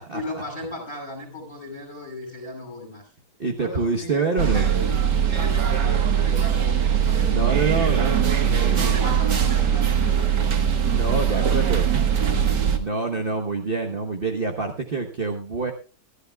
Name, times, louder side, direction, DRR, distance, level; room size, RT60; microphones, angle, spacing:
voice 1, 0.1-3.1 3.6-4.8 5.3-8.1 8.5-10.6 11.3-12.7 13.1-13.3, left 1 dB, 30° left, 3 dB, 6.1 m, -37 dB
voice 2, 3.4-4.7 7.3-8.9 10.9-11.9 12.7-15.7, right 4 dB, 35° right, 3 dB, 1.2 m, -26 dB
sound 1, 4.4-12.8, right 8 dB, 85° right, 2.1 m, -21 dB
24.5 x 11.5 x 2.3 m, 0.35 s
omnidirectional pair, 1.8 m